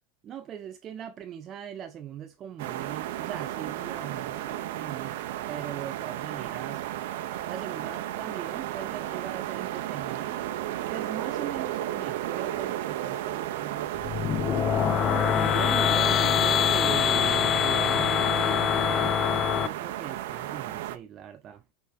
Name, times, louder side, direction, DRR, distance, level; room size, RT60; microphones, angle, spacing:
voice 1, 0.2-6.9 7.5-10.4 10.9-14.4 15.2-19.2 19.5-21.6, right 9 dB, 25° right, 0.5 m, -40 dB
sound 1, 2.6-21.0, right 13 dB, 65° right, 1.0 m, -33 dB
sound 2, 13.9-19.7, left 9 dB, 25° left, 0.4 m, -24 dB
6.9 x 5.1 x 5.2 m
supercardioid pair, 170°, 0 cm